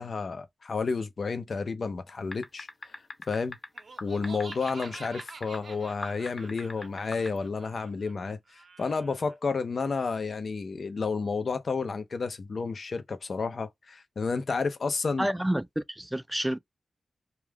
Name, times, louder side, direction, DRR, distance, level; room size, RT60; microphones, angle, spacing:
voice 1, 0.0-2.9 3.3-3.6 4.0-15.3, left 4 dB, 65° left, 0.6 m, -31 dB
sound 1, 2.3-5.6 6.0-7.4, left 2 dB, 40° left, 0.9 m, -40 dB
Laughter, 3.7-9.3, right 4 dB, 70° right, 0.6 m, -48 dB
voice 2, 15.2-16.6, right 1 dB, 10° right, 0.3 m, -29 dB
2.4 x 2.3 x 3.3 m
cardioid pair, 50°, 0 cm